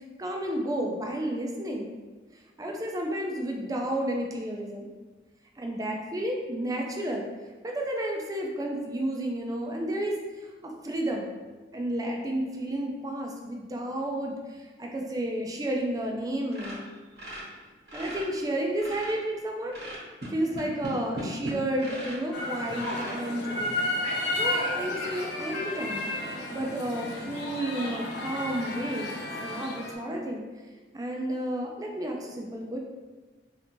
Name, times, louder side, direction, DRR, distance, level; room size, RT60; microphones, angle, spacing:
voice 1, 0.2-1.9 2.6-4.9 5.6-7.3 7.6-10.2 10.6-11.3 11.7-16.9 17.9-19.8 20.3-26.1 26.5-30.4 30.9-32.8, right 1 dB, 20° right, 1 dB, 0.4 m, -31 dB
sound 1, 16.5-18.3 18.6-19.3 19.7-22.2 22.7-23.2 23.8-23.9 24.3-24.4 24.9-25.0, right 1 dB, 60° right, 1.1 m, -38 dB
sound 2, 22.3-30.0, left 1 dB, 75° left, 0.5 m, -32 dB
3.2 x 2.6 x 2.9 m, 1.3 s
head